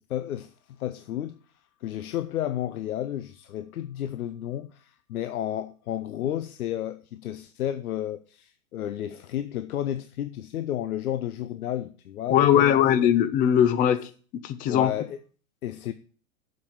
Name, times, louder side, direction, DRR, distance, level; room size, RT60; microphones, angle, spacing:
voice 1, 0.1-1.4 1.8-12.8 13.9-14.0 14.7-15.2 15.6-15.9, left 11 dB, 85° left, 0.8 m, -32 dB
voice 2, 12.3-14.0 14.4-14.9, left 10 dB, 20° left, 0.5 m, -20 dB
7.7 x 5.4 x 7.2 m
hypercardioid pair, 135°, 43 cm